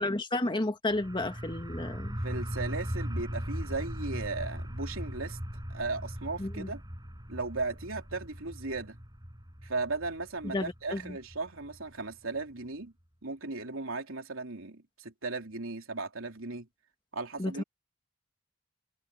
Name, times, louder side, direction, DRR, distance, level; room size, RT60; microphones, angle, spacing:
voice 1, 0.0-2.2 6.4-6.7 10.4-11.2 17.4-17.6, left 2 dB, 25° left, 1.8 m, -32 dB
sound 1, 0.9-12.4, equal, 20° right, 6.0 m, -39 dB
voice 2, 2.2-5.4 5.7-6.8 7.3-9.0 9.6-12.9 13.2-16.7 17.1-17.6, right 3 dB, 80° right, 3.3 m, -36 dB
head